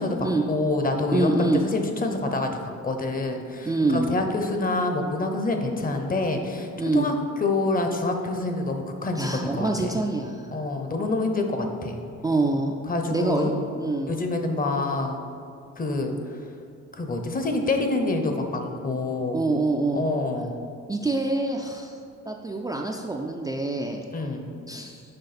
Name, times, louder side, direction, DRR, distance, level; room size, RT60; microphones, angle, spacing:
voice 1, 0.0-2.5 2.8-10.0 10.5-12.0 12.9-13.6 14.1-15.2 15.8-16.1 16.9-19.4 19.9-20.6 24.1-24.5, left 2 dB, 30° left, 4 dB, 0.7 m, -27 dB
voice 2, 1.1-1.6 3.6-4.1 6.8-7.1 9.2-10.5 12.2-12.8 13.1-14.2 19.3-20.1 20.9-21.9 22.3-24.0 24.7-25.0, right 2 dB, 15° right, 0 dB, 0.3 m, -25 dB
6.6 x 4.9 x 4.2 m, 2.5 s
cardioid pair, 90°, 30 cm